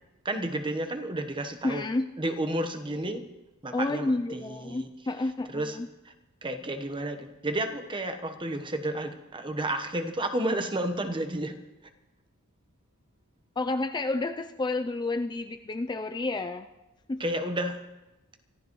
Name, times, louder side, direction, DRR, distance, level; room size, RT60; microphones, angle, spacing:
voice 1, 0.2-1.8 2.2-3.2 3.6-4.9 5.5-5.8 6.0-6.1 6.4-11.6 17.2-17.8, right 1 dB, 20° right, 7 dB, 1.1 m, -31 dB
voice 2, 1.6-2.1 3.7-5.9 13.6-16.7 17.1-17.2, left 2 dB, 20° left, 7 dB, 0.4 m, -30 dB
24.5 x 14.5 x 3.1 m, 1.1 s
head